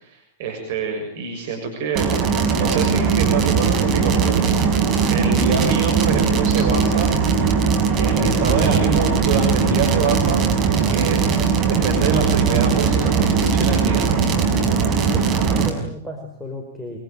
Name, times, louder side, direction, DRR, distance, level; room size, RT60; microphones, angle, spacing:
voice 1, 0.0-2.1 2.5-4.4 4.7-7.1 8.0-10.5 10.9-14.0, right 4 dB, 50° right, 3 dB, 6.7 m, -25 dB
sound 1, 1.9-15.7, right 6 dB, 30° right, 5.9 m, -19 dB
voice 2, 8.1-8.7 14.9-17.0, left 1 dB, ahead, 2 dB, 5.1 m, -33 dB
24.5 x 24.0 x 9.1 m, 0.67 s
figure-of-eight pair, 100°, 0 cm